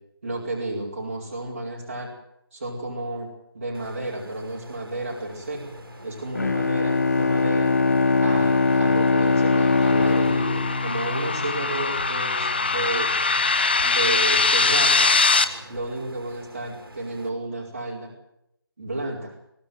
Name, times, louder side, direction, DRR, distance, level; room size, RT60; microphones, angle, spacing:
voice 1, 0.2-2.1 2.5-3.3 3.5-5.6 6.0-7.7 8.2-13.1 13.8-15.1 15.7-18.1 18.8-19.3, right 2 dB, 30° right, -3 dB, 4.9 m, -32 dB
sound 1, 3.7-17.3, right 1 dB, 65° right, 4.0 m, -44 dB
Bowed string instrument, 6.3-11.9, left 3 dB, 45° left, 1.3 m, -21 dB
sound 2, 7.7-15.4, left 3 dB, 25° left, 1.0 m, -23 dB
22.5 x 14.0 x 9.4 m, 0.82 s
figure-of-eight pair, 175°, 13 cm